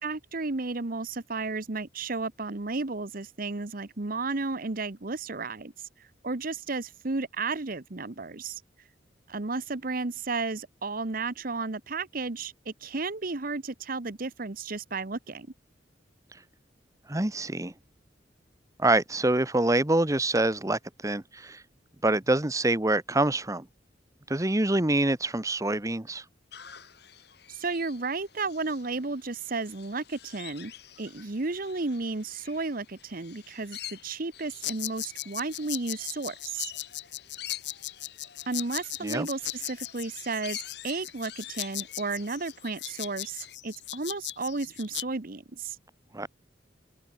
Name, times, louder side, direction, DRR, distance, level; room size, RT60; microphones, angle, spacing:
voice 1, 0.0-5.7 6.2-8.6 9.3-15.5 27.5-30.7 31.0-36.7 38.5-40.6 40.8-45.8, right 3 dB, 50° right, 1.1 m, -33 dB
voice 2, 17.1-17.7 18.8-21.6 22.0-23.7 24.3-26.2 39.0-39.3 46.1-46.3, right 2 dB, 20° right, 1.1 m, -26 dB
sound 1, 26.5-43.6, left 11 dB, 65° left, 6.5 m, -47 dB
sound 2, 34.6-45.0, left 14 dB, 80° left, 3.6 m, -37 dB
open air
head